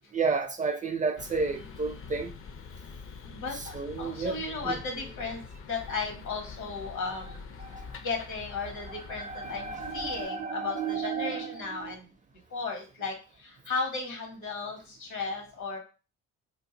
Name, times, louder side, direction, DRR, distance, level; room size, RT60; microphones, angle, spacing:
voice 1, 0.1-2.3 3.7-4.3 4.6-4.7 7.6-7.8 9.2-11.5 11.8-11.9, right 4 dB, 25° right, 0.4 m, -31 dB
sound 1, 1.2-10.2, left 5 dB, 45° left, 0.5 m, -45 dB
voice 2, 3.2-7.4 8.0-12.2 12.5-15.8, left 4 dB, 75° left, 1.3 m, -35 dB
2.6 x 2.4 x 3.9 m
cardioid pair, 90°, 30 cm